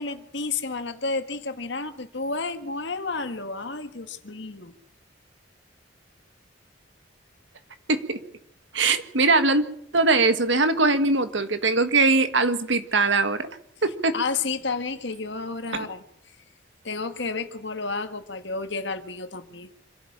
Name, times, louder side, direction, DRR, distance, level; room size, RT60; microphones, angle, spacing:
voice 1, 0.0-4.7 14.1-16.0 16.8-19.7, left 4 dB, 65° left, 8 dB, 1.7 m, -31 dB
voice 2, 7.9-8.2 8.7-9.6 9.9-13.5 13.8-14.1 15.7-15.8, right 3 dB, 70° right, 10 dB, 1.8 m, -21 dB
26.0 x 12.0 x 8.7 m, 0.74 s
head